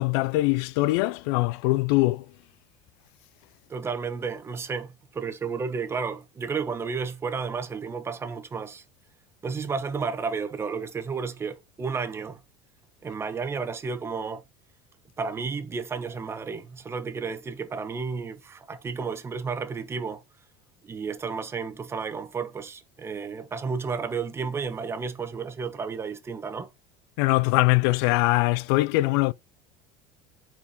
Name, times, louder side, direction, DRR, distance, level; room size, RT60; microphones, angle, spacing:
voice 1, 0.0-2.2 27.2-29.3, left 20 dB, 70° left, 0.4 m, -22 dB
voice 2, 3.7-8.8 9.4-12.4 13.0-14.4 15.2-20.2 20.8-26.7, right 5 dB, 20° right, 1.1 m, -32 dB
7.0 x 4.6 x 5.2 m
cardioid pair, 145°, 13 cm